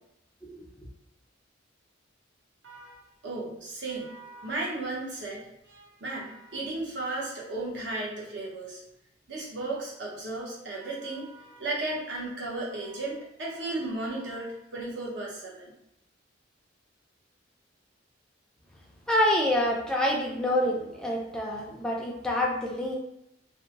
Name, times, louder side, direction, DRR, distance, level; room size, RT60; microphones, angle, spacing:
voice 1, 2.6-8.8 9.3-15.7, right 2 dB, 65° right, -4 dB, 0.9 m, -35 dB
voice 2, 19.1-23.0, left 1 dB, 5° left, -3 dB, 0.4 m, -27 dB
2.6 x 2.1 x 2.8 m, 0.82 s
head